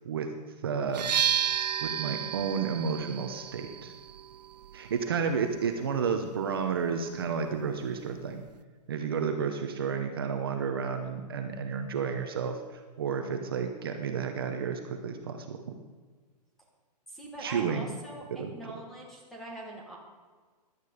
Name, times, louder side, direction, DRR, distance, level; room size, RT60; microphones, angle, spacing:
voice 1, 0.6-1.1 1.8-3.9 4.7-8.4 8.9-12.6 13.0-15.7 17.4-17.9 18.3-18.5, right 6 dB, 35° right, 5 dB, 0.9 m, -31 dB
sound 1, 0.9-8.6, right 9 dB, 75° right, 0.5 m, -34 dB
voice 2, 17.1-20.0, right 2 dB, ahead, -3 dB, 1.2 m, -43 dB
16.5 x 11.5 x 5.0 m, 1.4 s
hypercardioid pair, 180°, 21 cm